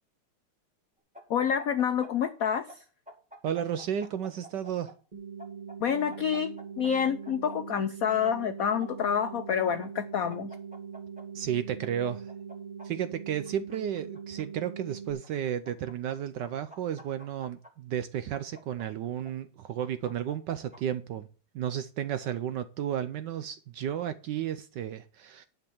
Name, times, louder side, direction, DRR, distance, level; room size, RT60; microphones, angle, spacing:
sound 1, 1.1-2.8 3.1-4.9 5.4-7.6 8.4-9.5 9.8-9.9 10.3-11.2 11.8-12.9 13.5-14.4 15.2-16.1 16.4-17.7 18.3-19.3 19.8-20.8, right 1 dB, 5° right, 1.6 m, -49 dB
voice 1, 1.3-2.8 5.8-10.5, left 8 dB, 80° left, 0.7 m, -28 dB
voice 2, 3.4-4.9 11.3-12.3 12.8-21.3 21.5-25.5, right 9 dB, 70° right, 1.0 m, -33 dB
sound 2, 5.1-15.1, right 6 dB, 20° right, 1.6 m, -42 dB
10.5 x 5.4 x 7.0 m
omnidirectional pair, 2.4 m